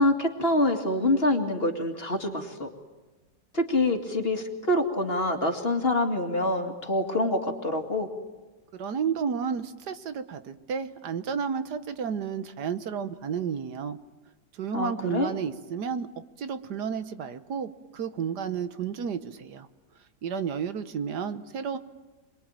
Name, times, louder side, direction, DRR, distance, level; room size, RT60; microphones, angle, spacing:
voice 1, 0.0-2.7 3.5-8.1 14.7-15.3, left 1 dB, 35° left, 4 dB, 2.5 m, -26 dB
voice 2, 8.7-14.0 14.5-16.1 16.4-19.7 20.2-21.8, right 6 dB, 80° right, 11 dB, 1.7 m, -32 dB
27.5 x 21.5 x 9.0 m, 1.2 s
omnidirectional pair, 1.8 m